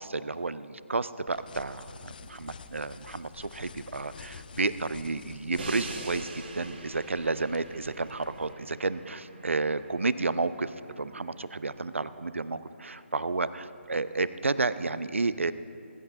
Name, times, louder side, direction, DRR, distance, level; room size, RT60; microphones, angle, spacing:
voice 1, 0.0-15.5, right 3 dB, 70° right, 15 dB, 0.5 m, -31 dB
sound 1, 1.3-8.5, left 5 dB, 45° left, 0.5 m, -49 dB
sound 2, 3.9-12.3, equal, 30° right, 2.4 m, -57 dB
Crash cymbal, 5.6-11.5, right 2 dB, 50° right, 1.6 m, -44 dB
21.5 x 10.5 x 2.7 m, 2.6 s
figure-of-eight pair, 145°, 7 cm